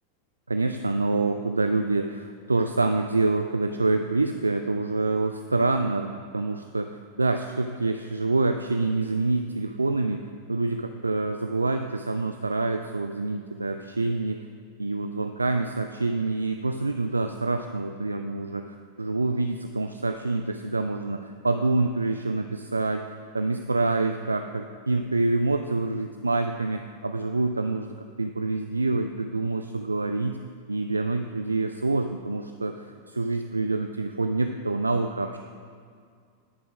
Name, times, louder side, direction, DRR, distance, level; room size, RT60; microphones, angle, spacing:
voice 1, 0.5-14.5 14.8-23.0 23.3-30.4 30.7-35.4, right 3 dB, 80° right, 7 dB, 0.3 m, -26 dB
9.7 x 6.8 x 4.9 m, 2.2 s
figure-of-eight pair, 90°, 0 cm